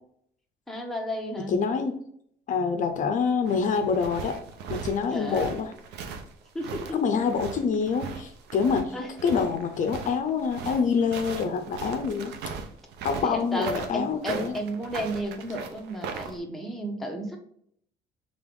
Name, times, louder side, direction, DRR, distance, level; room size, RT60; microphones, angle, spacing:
voice 1, 0.7-1.6 5.1-5.5 6.5-7.0 8.9-9.1 13.2-17.4, equal, ahead, 1 dB, 0.8 m, -33 dB
voice 2, 1.5-2.0 2.5-4.4 4.7-5.7 6.9-8.9 9.2-12.3 13.0-14.6, left 5 dB, 50° left, 7 dB, 0.5 m, -26 dB
sound 1, 3.2-16.4, right 6 dB, 85° right, 0.6 m, -38 dB
3.4 x 3.4 x 3.7 m, 0.67 s
cardioid pair, 110°, 17 cm